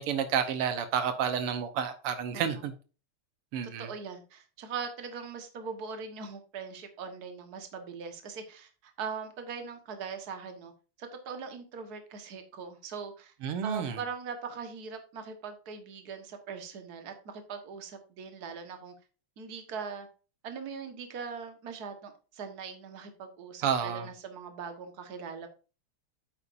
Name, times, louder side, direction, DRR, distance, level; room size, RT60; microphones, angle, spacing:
voice 1, 0.0-2.7 3.5-3.9 13.4-14.0 23.6-24.1, right 7 dB, 85° right, 1.9 m, -30 dB
voice 2, 3.8-10.7 11.0-13.3 13.6-18.9 19.4-20.1 20.4-25.5, right 6 dB, 50° right, 1.8 m, -41 dB
8.8 x 8.4 x 2.6 m
omnidirectional pair, 2.4 m